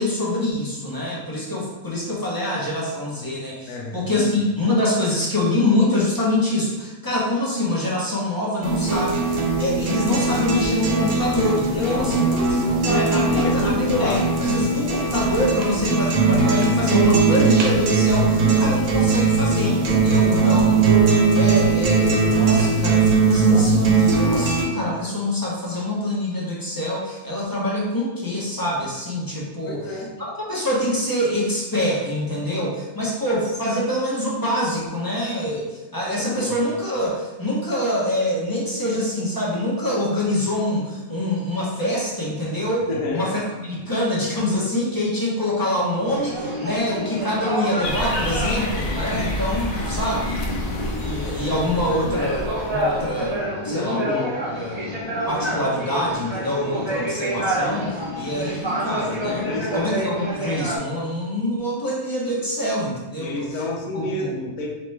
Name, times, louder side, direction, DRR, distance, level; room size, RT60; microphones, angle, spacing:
voice 1, 0.0-12.2 12.5-12.6 12.9-20.9 21.3-50.4 51.0-54.2 54.5-54.9 55.3-63.6 63.9-64.3, left 1 dB, 20° left, -6 dB, 0.6 m, -25 dB
voice 2, 3.7-4.3 11.7-14.2 23.4-23.7 24.5-24.6 29.6-30.1 36.2-36.5 42.9-43.4 52.0-52.1 53.7-54.3 59.4-60.0 63.2-64.7, left 3 dB, 85° left, -1 dB, 1.1 m, -29 dB
sound 1, 8.6-24.6, right 4 dB, 60° right, 1.1 m, -19 dB
sound 2, 46.0-60.8, equal, 25° right, 0.6 m, -28 dB
sound 3, 47.8-53.4, left 1 dB, 60° left, 0.9 m, -29 dB
4.2 x 2.9 x 3.2 m, 1.1 s
omnidirectional pair, 1.5 m